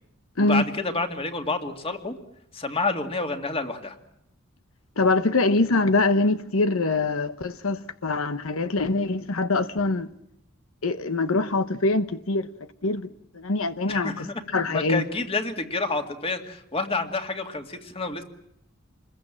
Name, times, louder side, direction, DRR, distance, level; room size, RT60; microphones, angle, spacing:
voice 1, 0.4-2.1 2.5-4.0 13.9-14.4 14.7-18.2, left 3 dB, 30° left, 2.3 m, -29 dB
voice 2, 5.0-10.1 10.8-12.5 12.8-13.1 13.3-14.3 14.5-15.0, left 3 dB, 90° left, 1.0 m, -24 dB
27.5 x 22.0 x 7.6 m
head